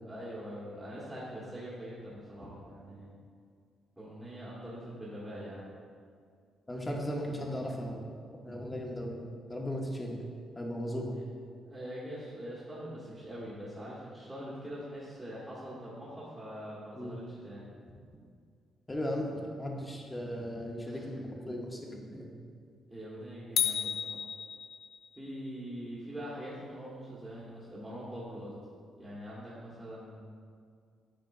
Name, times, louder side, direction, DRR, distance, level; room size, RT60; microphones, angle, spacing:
voice 1, 0.0-3.1 4.0-5.6 11.1-11.2 11.6-17.6 20.8-21.2 22.9-24.2 25.1-28.6 29.0-30.2, equal, 15° right, -8 dB, 1.5 m, -43 dB
voice 2, 6.7-8.0 8.4-9.2 9.5-10.2 10.5-11.2 17.0-17.2 18.9-19.3 19.6-22.3, equal, 15° left, 0 dB, 1.0 m, -36 dB
sound 1, 23.6-25.2, left 8 dB, 70° left, 0.4 m, -32 dB
9.1 x 4.4 x 2.6 m, 2.2 s
cardioid pair, 90°, 0 cm